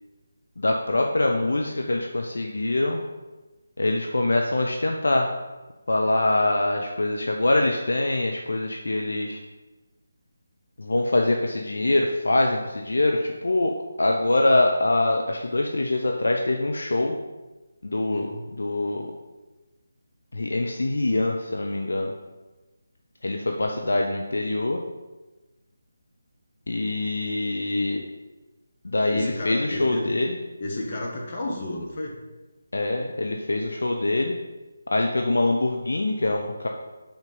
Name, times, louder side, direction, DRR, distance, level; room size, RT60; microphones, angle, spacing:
voice 1, 0.6-3.0 3.8-5.3 5.9-9.4 10.8-17.2 17.8-18.3 18.6-19.1 20.3-22.1 23.2-24.8 26.7-28.0 28.8-30.3 32.7-34.4 34.9-36.7, left 2 dB, 65° left, 2 dB, 0.6 m, -24 dB
voice 2, 29.1-30.0 30.6-32.2, left 1 dB, 35° left, -2 dB, 1.4 m, -32 dB
5.4 x 4.4 x 5.3 m, 1.1 s
figure-of-eight pair, 155°, 0 cm